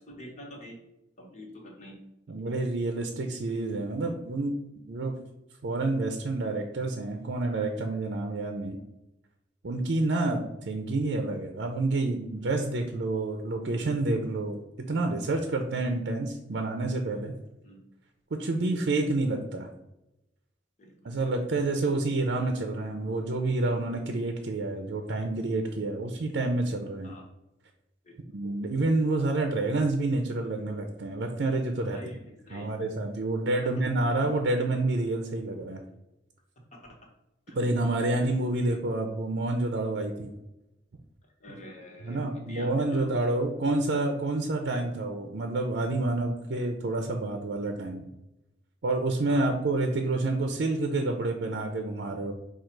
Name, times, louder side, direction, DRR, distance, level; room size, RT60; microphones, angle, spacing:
voice 1, 0.1-0.8 1.2-2.0 17.6-17.8 18.6-18.7 20.8-20.9 27.0-27.2 28.0-28.1 31.9-32.7 37.5-37.6 41.4-42.2 42.5-43.1 49.3-49.5, left 1 dB, 40° left, -1 dB, 1.2 m, -45 dB
voice 2, 2.3-5.1 5.6-8.8 9.6-17.3 18.4-19.7 21.0-27.1 28.3-32.0 32.5-35.8 37.6-40.3 41.5-41.6 42.0-48.1 48.8-52.3, right 2 dB, 65° right, 4 dB, 0.5 m, -28 dB
4.9 x 2.4 x 4.5 m, 0.90 s
head